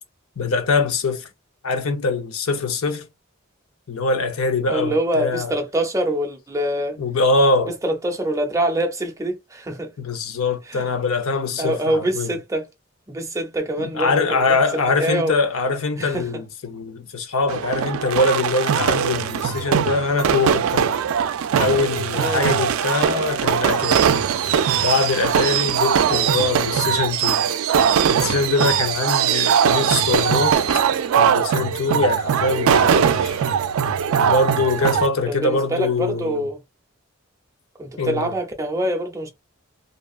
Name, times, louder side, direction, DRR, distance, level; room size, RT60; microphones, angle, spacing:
voice 1, 0.4-1.3 1.6-3.1 3.9-5.5 7.0-7.8 10.0-12.3 13.8-20.9 21.6-24.1 24.8-27.4 28.1-30.6 31.2-33.4 34.2-36.4 38.0-38.3, left 3 dB, 90° left, 0.6 m, -23 dB
voice 2, 4.7-7.0 7.8-9.9 10.7-10.8 11.6-12.7 13.1-15.4 16.0-16.3 22.1-22.7 26.1-26.3 35.3-36.6 37.8-39.3, right 1 dB, 15° right, 0.6 m, -25 dB
sound 1, 17.5-35.1, right 8 dB, 85° right, 0.3 m, -20 dB
2.7 x 2.3 x 2.4 m
head